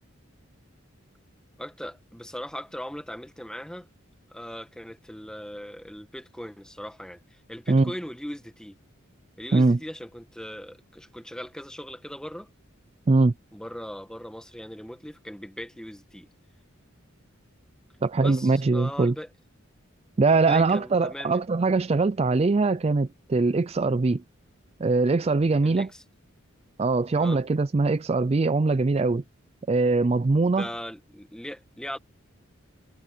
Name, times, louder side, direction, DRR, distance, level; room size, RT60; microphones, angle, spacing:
voice 1, 1.6-3.9 4.3-8.8 9.4-12.5 13.5-16.3 18.2-19.3 20.3-21.4 25.6-26.0 27.2-27.4 30.4-32.0, equal, 5° left, 1.5 m, -39 dB
voice 2, 18.0-19.1 20.2-24.2 24.8-25.9 26.8-29.2 29.7-30.7, right 3 dB, 30° right, 0.4 m, -22 dB
head